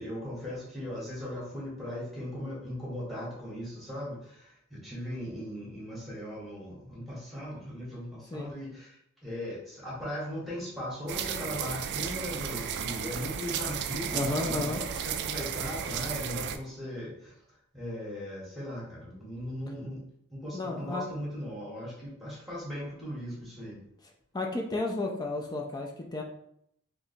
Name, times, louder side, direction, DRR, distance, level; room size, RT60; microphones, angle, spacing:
voice 1, 0.0-17.4 17.7-20.0 20.3-23.8, equal, ahead, -6 dB, 1.3 m, -38 dB
sound 1, 11.1-16.6, right 8 dB, 55° right, 0.3 m, -34 dB
voice 2, 14.1-14.8 20.5-21.1 24.3-26.2, left 2 dB, 20° left, 1 dB, 0.4 m, -32 dB
2.9 x 2.5 x 4.2 m, 0.71 s
head